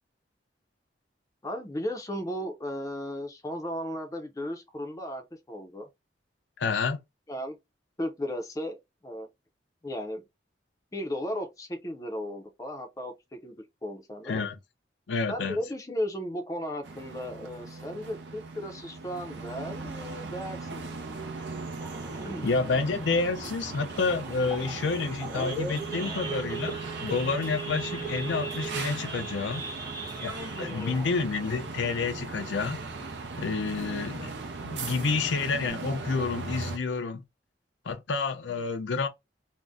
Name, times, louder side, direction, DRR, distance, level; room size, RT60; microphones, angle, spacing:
voice 1, 1.4-5.9 6.6-6.8 7.3-7.6 8.0-8.8 9.0-9.3 9.8-10.2 10.9-14.4 15.3-21.0 22.0-22.5 30.6-31.0, equal, 20° left, 0.5 m, -35 dB
voice 2, 6.6-7.0 14.3-14.5 15.1-15.6 22.4-29.6 30.2-32.8 33.4-34.3 34.6-37.2 37.8-39.1, left 4 dB, 85° left, 0.5 m, -29 dB
sound 1, 16.8-36.8, right 3 dB, 70° right, 0.6 m, -38 dB
Idling / Accelerating revving vroom / Sawing, 21.8-32.9 33.3-33.5 33.7-33.8 34.3-34.6 35.1-35.2 35.4-35.7, right 3 dB, 20° right, 0.7 m, -39 dB
2.6 x 2.1 x 3.4 m
head